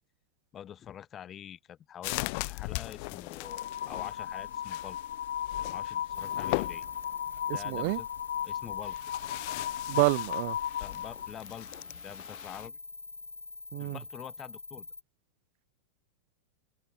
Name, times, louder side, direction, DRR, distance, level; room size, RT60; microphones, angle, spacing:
voice 1, 0.5-5.0 5.7-6.8 7.5-8.1 8.4-9.0 10.8-12.8 13.8-14.9, left 10 dB, 25° left, 6.6 m, -46 dB
sound 1, 2.0-12.7, left 31 dB, 45° left, 3.6 m, -40 dB
sound 2, 3.4-11.3, left 10 dB, 65° left, 2.3 m, -36 dB
sound 3, 6.1-15.0, left 3 dB, 80° left, 4.4 m, -46 dB
voice 2, 7.5-8.0 9.9-10.6 13.7-14.0, right 33 dB, 45° right, 0.8 m, -28 dB
figure-of-eight pair, 90°, 0 cm